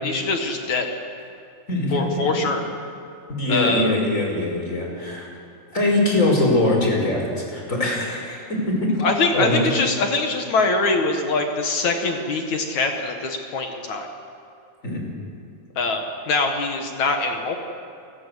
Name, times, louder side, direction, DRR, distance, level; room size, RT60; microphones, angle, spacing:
voice 1, 0.0-0.9 1.9-2.6 3.5-4.0 9.0-14.1 15.8-17.6, left 3 dB, 55° left, 4 dB, 2.5 m, -23 dB
voice 2, 1.7-2.0 3.3-5.3 5.7-9.1 9.3-9.6 14.8-15.0, left 2 dB, 20° left, 0 dB, 5.6 m, -22 dB
28.5 x 19.5 x 8.3 m, 2.5 s
omnidirectional pair, 4.4 m